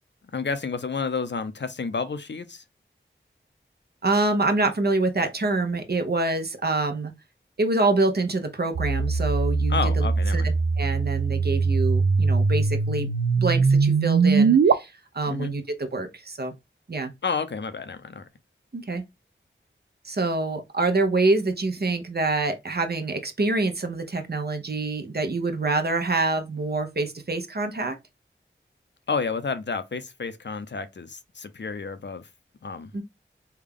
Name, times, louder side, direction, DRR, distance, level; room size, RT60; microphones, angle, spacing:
voice 1, 0.3-2.6 9.7-10.5 15.3-15.5 17.2-18.3 29.1-32.3 32.6-33.0, left 5 dB, 60° left, 0.6 m, -30 dB
voice 2, 4.0-7.1 7.6-10.1 10.3-13.1 13.4-16.5 16.9-17.1 18.7-19.0 20.0-28.0 32.9-33.0, right 2 dB, 50° right, 0.9 m, -26 dB
sound 1, 8.7-14.7, right 4 dB, 85° right, 0.5 m, -21 dB
3.4 x 2.3 x 3.6 m
wide cardioid pair, 50°, 20 cm